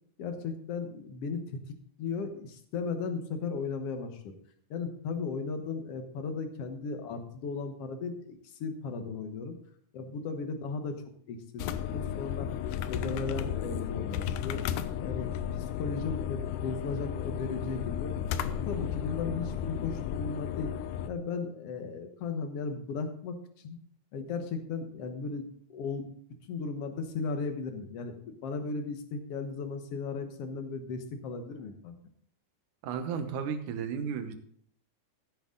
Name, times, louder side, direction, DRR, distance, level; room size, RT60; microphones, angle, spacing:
voice 1, 0.2-1.6 2.0-4.4 4.7-9.6 9.9-11.0 11.3-11.6 11.9-12.5 12.9-14.6 15.0-18.1 18.7-20.7 21.1-23.8 24.1-26.2 26.5-31.9, left 4 dB, 55° left, 6 dB, 1.9 m, -36 dB
sound 1, 11.6-21.1, left 9 dB, 80° left, 2.1 m, -34 dB
voice 2, 32.8-34.3, right 6 dB, 75° right, 8 dB, 2.5 m, -33 dB
15.0 x 8.1 x 3.8 m, 0.63 s
omnidirectional pair, 3.7 m